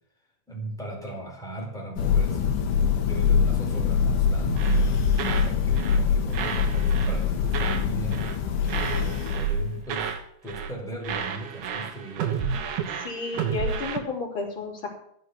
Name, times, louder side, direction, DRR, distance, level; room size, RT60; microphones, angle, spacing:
voice 1, 0.5-2.6 3.0-8.2 8.8-10.2 10.4-12.6, right 2 dB, ahead, -2 dB, 4.1 m, -37 dB
Thunder, 2.0-9.8, left 7 dB, 75° left, 2.8 m, -24 dB
sound 1, 4.6-5.5 5.8-6.0 6.3-8.4 8.7-10.2 10.5-10.8 11.0-14.0, right 6 dB, 70° right, 2.7 m, -30 dB
voice 2, 13.0-14.9, left 4 dB, 35° left, -2 dB, 4.1 m, -32 dB
14.5 x 6.1 x 9.7 m, 0.69 s
omnidirectional pair, 3.8 m